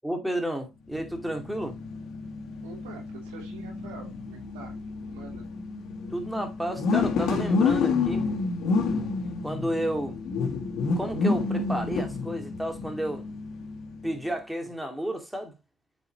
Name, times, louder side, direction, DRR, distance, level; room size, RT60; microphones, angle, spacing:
voice 1, 0.0-1.8 6.1-8.3 9.4-10.2 11.0-13.3 14.0-15.5, right 1 dB, 5° right, 2.3 m, -31 dB
sound 1, 0.9-14.2, left 4 dB, 60° left, 1.9 m, -29 dB
voice 2, 2.6-4.7 5.1-5.5 14.6-14.7, right 5 dB, 85° right, 3.2 m, -46 dB
7.9 x 5.8 x 3.0 m
hypercardioid pair, 65°, 0 cm